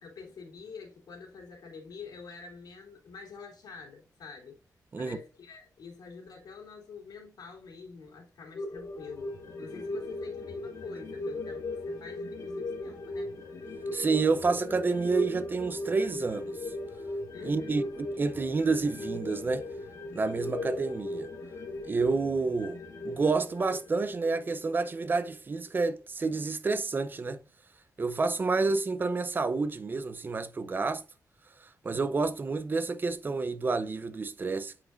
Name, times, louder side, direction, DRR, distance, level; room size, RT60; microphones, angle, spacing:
voice 1, 0.0-4.6 5.0-13.4 17.3-17.8, left 5 dB, 85° left, 2.9 m, -46 dB
sound 1, 8.5-25.3 25.7-25.8, left 2 dB, 50° left, 1.6 m, -38 dB
voice 2, 13.9-16.5 17.4-17.8 18.2-19.7 20.1-21.3 21.8-22.8 23.0-27.4 28.0-31.0 31.6-34.7, right 4 dB, 30° right, 0.6 m, -29 dB
8.5 x 5.0 x 2.5 m
wide cardioid pair, 160°, 7 cm